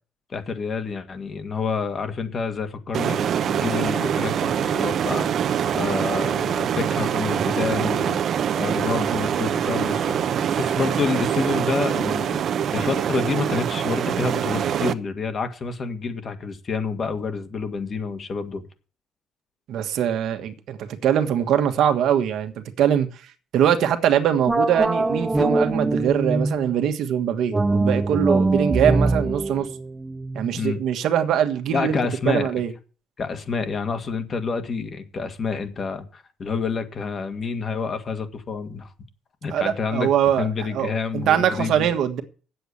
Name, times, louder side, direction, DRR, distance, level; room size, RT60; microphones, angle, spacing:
voice 1, 0.3-5.4 5.7-8.2 8.6-12.4 12.7-18.6 30.5-30.8 31.7-32.5 33.2-38.9 39.4-40.1 40.4-42.0, left 4 dB, 40° left, 1.8 m, -28 dB
sound 1, 2.9-14.9, right 9 dB, 60° right, 0.8 m, -24 dB
voice 2, 19.7-23.1 23.5-29.7 30.3-31.9 32.2-32.7 39.5-40.5 40.7-42.2, right 9 dB, 75° right, 1.4 m, -22 dB
sound 2, 24.5-26.7 27.5-30.8, right 2 dB, 15° right, 0.5 m, -23 dB
9.3 x 7.9 x 8.4 m
cardioid pair, 115°, 0 cm